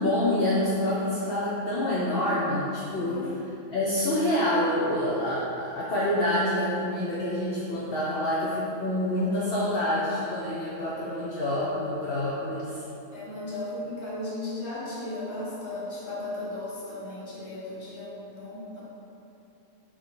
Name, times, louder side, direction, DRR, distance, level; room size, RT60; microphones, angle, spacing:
voice 1, 0.0-3.3 3.7-12.8, left 1 dB, 70° left, -8 dB, 0.5 m, -27 dB
voice 2, 3.0-3.3 13.1-18.8, left 2 dB, 25° left, -8 dB, 0.7 m, -36 dB
4.5 x 2.1 x 3.7 m, 2.9 s
omnidirectional pair, 1.5 m